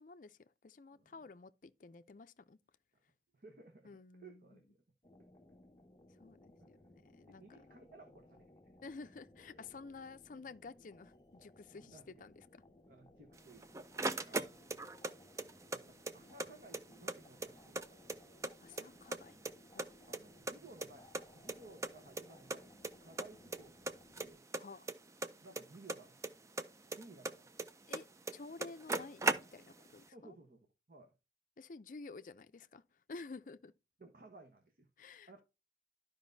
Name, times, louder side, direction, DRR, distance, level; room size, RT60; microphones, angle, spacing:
voice 1, 0.0-2.6 3.8-4.6 6.2-6.8 7.0-7.8 8.8-12.6 14.2-14.4 18.6-19.4 19.7-19.9 24.6-24.9 27.9-28.1 28.3-30.4 31.6-32.8 33.1-33.7 35.0-35.4, left 3 dB, 45° left, 0.5 m, -52 dB
voice 2, 0.9-1.2 3.3-3.9 4.2-4.8 5.2-5.3 6.6-6.7 7.3-8.5 9.0-9.1 9.5-9.6 11.7-12.2 12.9-13.7 14.2-14.9 15.7-18.3 20.1-21.1 21.3-24.4 25.4-26.2 27.0-27.5 30.1-31.1 34.0-34.9 35.3-35.4, right 2 dB, 50° right, 1.1 m, -58 dB
sound 1, 5.0-24.4, left 1 dB, 20° left, 1.3 m, -63 dB
sound 2, 13.4-15.1 15.4-16.5 16.7-16.8 17.1-18.5 18.8-19.5 19.8-21.2 21.5-21.6 21.8-21.9 22.2-22.3 22.5-22.9 23.2-23.6 23.9-26.3 26.6-28.0 28.3-28.4 28.6-29.8, right 3 dB, 15° right, 0.4 m, -37 dB
12.5 x 5.2 x 2.6 m
head